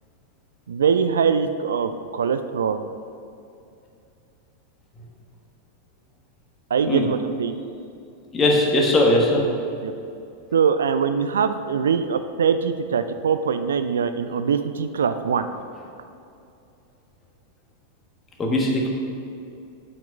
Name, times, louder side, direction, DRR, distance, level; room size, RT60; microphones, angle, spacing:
voice 1, 0.7-2.8 6.7-7.6 9.8-9.9 10.5-15.5, right 6 dB, 65° right, 10 dB, 0.3 m, -22 dB
voice 2, 8.3-9.4 18.4-18.9, left 1 dB, 20° left, 0 dB, 1.4 m, -19 dB
7.5 x 5.9 x 5.2 m, 2.6 s
figure-of-eight pair, 90°, 0 cm